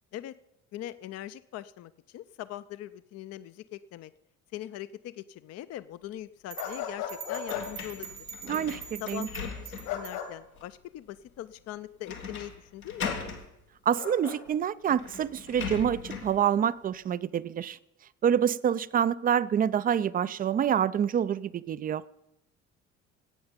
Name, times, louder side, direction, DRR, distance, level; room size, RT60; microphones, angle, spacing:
voice 1, 0.7-4.1 4.5-8.3 9.0-13.1, left 13 dB, 40° left, 0.5 m, -41 dB
sound 1, 6.5-10.2, right 6 dB, 90° right, 2.8 m, -44 dB
sound 2, 6.6-7.7 9.8-10.3 13.0-13.2 14.0-14.4, left 9 dB, 65° left, 2.1 m, -35 dB
sound 3, 7.5-10.0 10.6-10.7 12.1-12.5 12.8-13.4 14.5-14.6 14.9-16.4, left 5 dB, 90° left, 1.6 m, -39 dB
voice 2, 8.5-9.3 13.9-17.8 18.2-22.0, right 8 dB, 20° right, 0.4 m, -27 dB
16.5 x 8.7 x 5.2 m
figure-of-eight pair, 55°, 42 cm